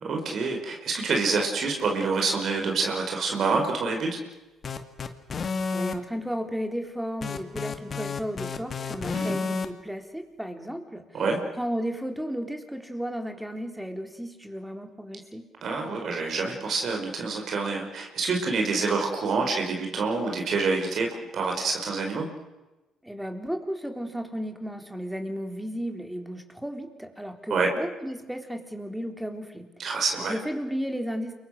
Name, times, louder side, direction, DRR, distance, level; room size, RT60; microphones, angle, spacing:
voice 1, 0.0-4.1 9.1-9.4 11.1-11.4 15.6-21.1 21.3-22.3 27.5-27.7 29.8-30.3, right 4 dB, 55° right, 2 dB, 5.2 m, -27 dB
sound 1, 4.6-5.9 7.2-9.7, left 5 dB, 45° left, 2.2 m, -30 dB
voice 2, 5.7-11.2 11.6-15.4 23.0-29.7 30.3-31.3, equal, 5° right, 5 dB, 4.0 m, -34 dB
29.0 x 23.0 x 6.7 m, 1.1 s
cardioid pair, 85°, 0 cm